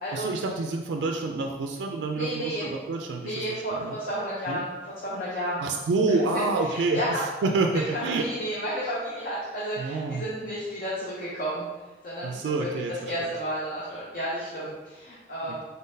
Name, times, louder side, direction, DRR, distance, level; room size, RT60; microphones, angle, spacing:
voice 1, 0.1-3.4 3.8-4.0 4.5-4.6 5.6-7.0 7.4-8.3 9.8-10.2 12.2-13.1, right 3 dB, 90° right, 3 dB, 0.3 m, -27 dB
voice 2, 2.1-2.7 3.2-5.6 6.1-7.2 7.7-11.7 12.0-12.7 13.1-15.6, equal, 50° left, -7 dB, 0.7 m, -32 dB
3.9 x 3.7 x 2.7 m, 1.3 s
head